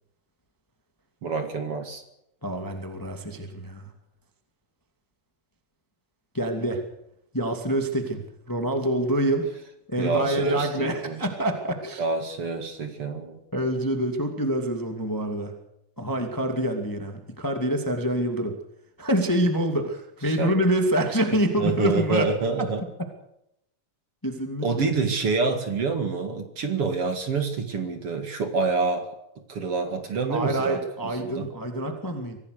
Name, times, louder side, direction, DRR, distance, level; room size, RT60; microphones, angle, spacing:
voice 1, 1.2-2.0 10.0-11.2 12.0-13.4 20.3-20.5 21.6-22.8 24.6-29.1 29.5-31.5, right 4 dB, 50° right, 6 dB, 2.8 m, -27 dB
voice 2, 2.4-3.9 6.3-6.8 7.3-9.5 9.9-12.0 13.5-15.5 16.0-18.6 19.0-22.3 22.6-22.7 24.2-24.9 30.3-32.4, right 1 dB, 5° left, 4 dB, 1.9 m, -26 dB
24.5 x 17.0 x 6.7 m, 0.80 s
omnidirectional pair, 3.5 m